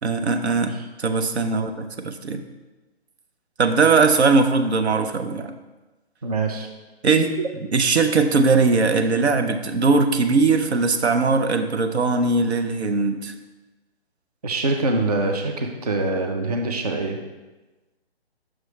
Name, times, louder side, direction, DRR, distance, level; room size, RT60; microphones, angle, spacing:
voice 1, 0.0-2.4 3.6-5.5 7.0-13.3, right 4 dB, 80° right, 7 dB, 0.7 m, -20 dB
voice 2, 6.2-6.7 14.4-17.2, right 2 dB, 35° right, 3 dB, 0.5 m, -24 dB
6.2 x 3.1 x 5.5 m, 1.2 s
hypercardioid pair, 160°, 32 cm